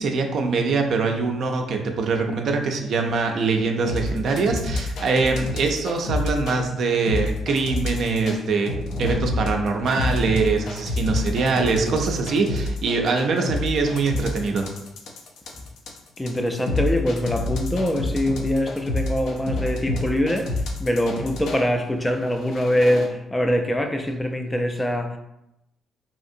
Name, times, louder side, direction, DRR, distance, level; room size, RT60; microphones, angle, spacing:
voice 1, 0.0-14.7, right 4 dB, 65° right, 3 dB, 0.4 m, -23 dB
sound 1, 3.9-6.6 7.1-8.4 8.7-21.6 22.2-23.1, left 2 dB, 75° left, 0.5 m, -28 dB
voice 2, 16.2-25.2, equal, 15° left, 4 dB, 0.3 m, -23 dB
2.8 x 2.6 x 2.5 m, 0.86 s
cardioid pair, 90°, 0 cm